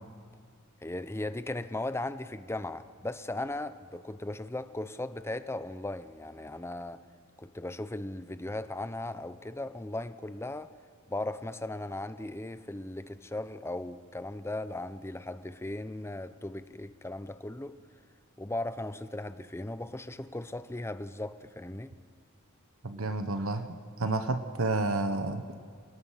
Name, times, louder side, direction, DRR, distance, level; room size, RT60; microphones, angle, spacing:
voice 1, 0.8-7.0 7.4-10.7 11.1-17.8 18.4-21.9, left 2 dB, 10° left, 12 dB, 0.7 m, -37 dB
voice 2, 22.8-23.7 24.0-25.4, right 2 dB, 80° right, 9 dB, 1.1 m, -30 dB
28.5 x 18.0 x 5.8 m, 2.1 s
head